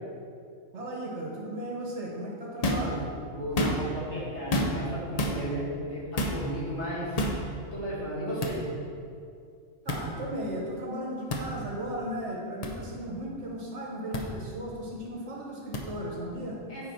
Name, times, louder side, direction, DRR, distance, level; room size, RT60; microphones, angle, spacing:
voice 1, 0.7-3.1 9.8-16.6, right 1 dB, 60° right, -2 dB, 1.5 m, -36 dB
sound 1, 2.6-2.9 3.4-4.0 4.5-4.9 5.2-5.4 6.2-6.4 7.2-7.4 8.4-8.6 9.9-10.0 11.3-11.5 12.6-12.7 14.1-14.2 15.7-15.8, left 1 dB, 40° left, 0.6 m, -28 dB
voice 2, 3.3-7.3 7.7-8.7 16.7-16.9, equal, 60° left, -8 dB, 2.4 m, -34 dB
7.8 x 4.9 x 4.4 m, 2.4 s
omnidirectional pair, 1.4 m